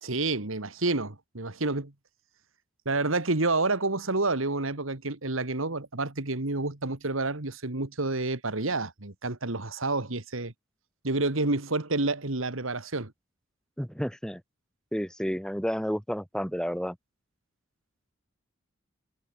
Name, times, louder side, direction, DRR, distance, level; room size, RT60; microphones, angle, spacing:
voice 1, 0.0-1.9 2.9-10.5 11.0-13.1, right 2 dB, 90° right, 2.3 m, -29 dB
voice 2, 13.8-14.4 14.9-17.0, equal, 5° left, 3.4 m, -31 dB
head